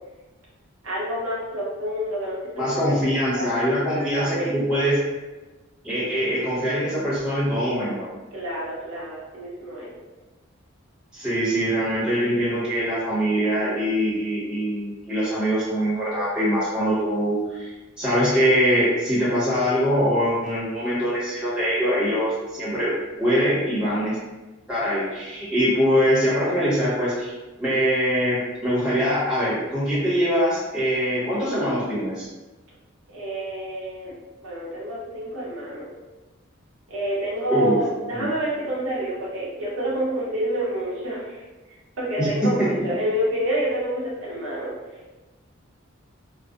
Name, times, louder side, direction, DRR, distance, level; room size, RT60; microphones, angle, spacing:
voice 1, 0.8-2.9 3.3-3.6 3.9-4.8 8.3-9.9 33.1-34.1 34.4-35.9 36.9-41.4 42.0-44.7, right 1 dB, 70° right, -6 dB, 0.7 m, -28 dB
voice 2, 2.6-5.0 5.8-8.1 11.1-22.9 23.2-24.2 24.7-27.3 27.6-32.3 37.5-37.8 38.1-38.3 42.2-42.7, equal, 5° right, -11 dB, 1.0 m, -23 dB
2.5 x 2.2 x 2.3 m, 1.2 s
head